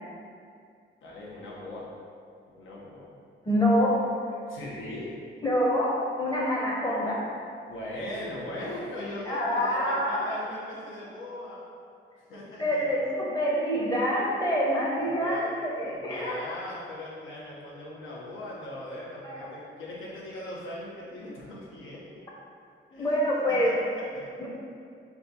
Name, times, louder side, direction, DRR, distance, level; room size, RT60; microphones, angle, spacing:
voice 1, 1.0-1.9 2.5-3.1 4.5-5.1 7.6-11.6 12.2-12.9 15.1-15.5 15.8-22.2 22.9-23.2 23.5-24.3, left 1 dB, 80° left, -6 dB, 1.0 m, -39 dB
voice 2, 3.5-3.9 5.4-7.2 9.3-10.3 12.6-16.5 19.2-19.5 23.0-23.7 24.4-24.5, equal, 20° left, -4 dB, 0.8 m, -26 dB
4.2 x 2.3 x 4.0 m, 2.3 s
cardioid pair, 120°, 20 cm